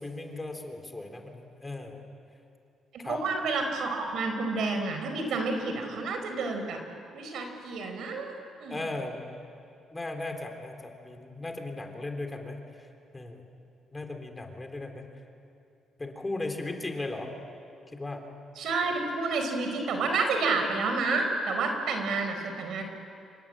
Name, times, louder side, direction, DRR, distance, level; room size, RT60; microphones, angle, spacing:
voice 1, 0.0-2.0 3.0-3.2 8.7-9.3 9.9-12.6 13.1-13.4 13.9-15.1 16.0-17.3 17.9-18.2, left 2 dB, 20° left, 4 dB, 3.6 m, -37 dB
voice 2, 3.0-6.8 7.1-8.8 18.6-22.8, right 3 dB, 75° right, 5 dB, 4.7 m, -30 dB
27.5 x 24.5 x 8.8 m, 2.6 s
cardioid pair, 90°, 0 cm